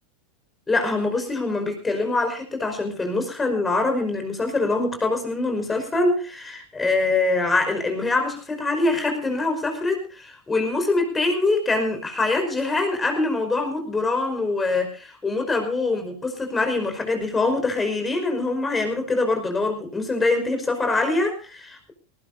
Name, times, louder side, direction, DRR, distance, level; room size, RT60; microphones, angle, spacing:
voice 1, 0.7-21.9, left 3 dB, 15° left, 6 dB, 5.4 m, -24 dB
19.5 x 19.0 x 2.7 m, 0.34 s
supercardioid pair, 130°, 0 cm